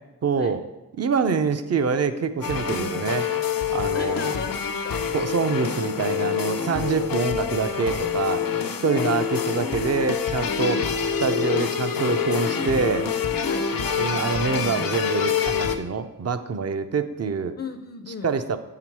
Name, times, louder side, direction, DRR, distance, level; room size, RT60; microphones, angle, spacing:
voice 1, 0.2-0.6 1.0-3.3 3.7-4.3 5.1-8.4 8.8-10.8 11.2-13.1 14.0-17.5 18.2-18.6, right 5 dB, 45° right, 10 dB, 0.6 m, -25 dB
sound 1, 2.4-15.8, left 7 dB, 80° left, 0.7 m, -26 dB
voice 2, 3.9-5.1 8.8-9.2 10.6-10.8 13.4-13.7 17.6-18.3, left 6 dB, 40° left, 8 dB, 0.5 m, -33 dB
8.4 x 5.8 x 4.6 m, 1.1 s
wide cardioid pair, 80°, 34 cm